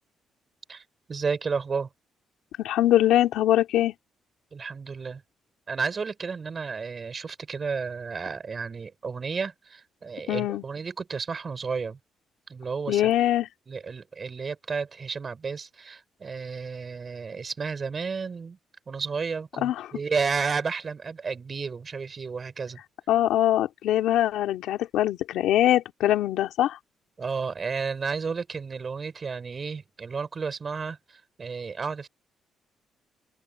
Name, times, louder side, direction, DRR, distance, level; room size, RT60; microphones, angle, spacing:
voice 1, 1.1-1.9 4.5-5.2 5.7-12.0 12.5-13.1 13.7-18.6 18.9-22.8 27.2-32.1, right 5 dB, 40° right, 5.7 m, -32 dB
voice 2, 2.6-3.9 10.3-10.6 12.9-13.5 19.6-19.9 23.1-26.8, left 13 dB, 85° left, 2.6 m, -23 dB
cardioid pair, 90°, 0 cm